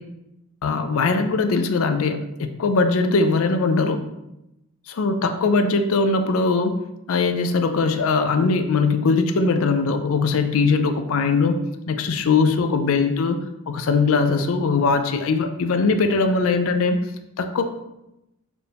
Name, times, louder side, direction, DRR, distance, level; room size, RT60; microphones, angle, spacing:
voice 1, 0.6-4.0 5.0-6.8 7.1-11.5 11.9-13.4 13.7-17.0 17.4-17.6, left 4 dB, 65° left, 7 dB, 0.4 m, -20 dB
4.5 x 2.6 x 3.4 m, 0.90 s
head